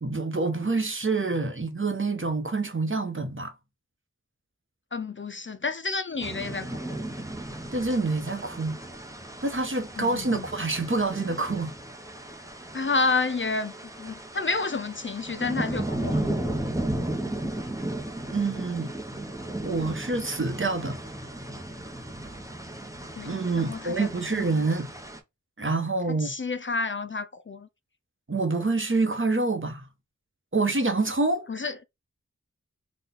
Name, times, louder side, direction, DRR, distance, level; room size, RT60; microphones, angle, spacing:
voice 1, 0.0-3.5 7.7-8.8 9.4-11.7 18.3-18.9 19.6-21.0 23.2-24.9 25.6-26.3 28.3-29.9 30.5-31.5, right 3 dB, 40° right, 0.9 m, -27 dB
voice 2, 4.9-6.7 10.0-10.5 12.7-13.7 14.0-16.3 23.2-24.4 26.2-27.7 31.5-31.8, left 4 dB, 40° left, 0.4 m, -30 dB
sound 1, 6.2-25.2, right 1 dB, 10° right, 0.8 m, -35 dB
4.2 x 2.4 x 3.9 m
wide cardioid pair, 40°, 30 cm